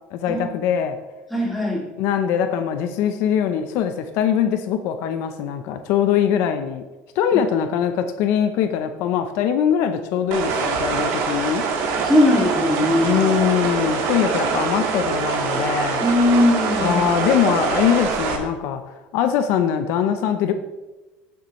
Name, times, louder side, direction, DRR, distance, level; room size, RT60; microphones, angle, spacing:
voice 1, 0.1-1.0 2.0-6.8 7.2-11.6 13.0-16.0 16.8-18.8 19.1-20.5, left 9 dB, 60° left, 8 dB, 0.7 m, -22 dB
voice 2, 1.3-1.8 12.0-13.2 16.0-17.0, left 1 dB, ahead, -3 dB, 2.3 m, -19 dB
sound 1, 10.3-18.4, right 5 dB, 60° right, 1.7 m, -24 dB
16.0 x 7.0 x 3.1 m, 1.1 s
cardioid pair, 150°, 5 cm